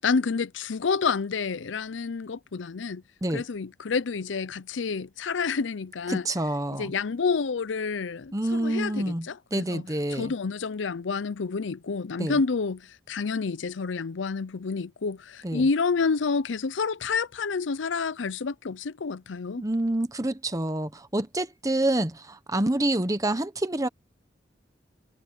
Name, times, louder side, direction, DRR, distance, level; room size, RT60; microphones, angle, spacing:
voice 1, 0.0-3.0 3.3-6.3 6.7-9.8 10.1-19.6, left 5 dB, 85° left, 0.6 m, -29 dB
voice 2, 6.1-6.9 8.3-10.3 12.2-12.4 15.4-15.7 19.6-23.9, right 1 dB, 20° right, 1.2 m, -27 dB
head